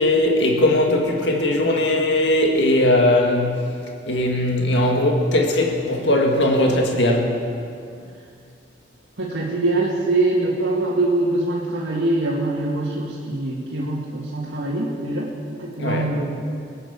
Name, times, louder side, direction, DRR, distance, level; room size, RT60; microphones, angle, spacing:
voice 1, 0.0-3.7 4.1-7.3 15.8-16.1, left 1 dB, 80° left, 1 dB, 2.0 m, -19 dB
voice 2, 9.2-15.3 15.6-16.3, right 2 dB, 80° right, -7 dB, 2.1 m, -23 dB
19.5 x 9.0 x 7.1 m, 2.4 s
head